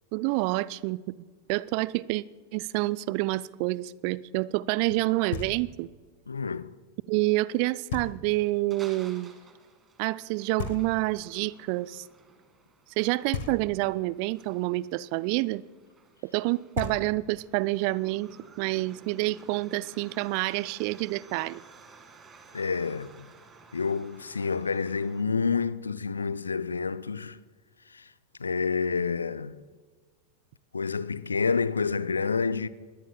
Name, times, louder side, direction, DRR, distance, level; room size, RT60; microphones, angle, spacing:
voice 1, 0.1-1.1 1.5-2.2 2.5-5.9 7.1-9.3 10.0-12.0 13.0-15.6 16.2-18.3 18.6-21.6, right 20 dB, 45° right, 0.4 m, -28 dB
Knock, 5.3-6.0 7.9-8.6 10.6-11.4 13.3-14.1 16.4-16.5 16.7-17.6, left 8 dB, 55° left, 1.1 m, -37 dB
voice 2, 6.3-6.7 22.5-23.3 23.7-27.4 27.9-28.1 28.4-29.6 30.7-32.7, left 5 dB, 75° left, 0.5 m, -29 dB
sound 1, 8.3-25.2, right 4 dB, 20° right, 2.0 m, -55 dB
21.5 x 16.5 x 2.3 m
figure-of-eight pair, 90°, 0 cm